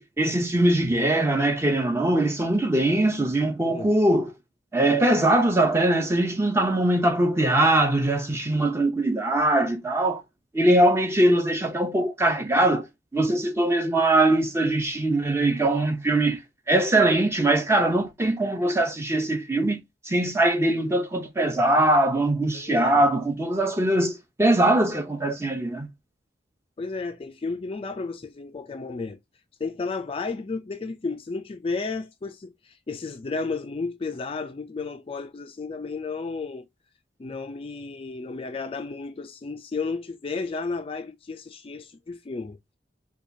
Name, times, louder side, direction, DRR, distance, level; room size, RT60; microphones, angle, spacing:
voice 1, 0.0-4.3 4.7-10.2 10.5-12.9 13.1-16.4 16.7-25.9, right 1 dB, 15° right, 0.6 m, -22 dB
voice 2, 22.5-23.0 26.8-29.2 29.6-36.7 37.2-42.6, left 4 dB, 30° left, 0.3 m, -33 dB
4.7 x 2.3 x 2.6 m
head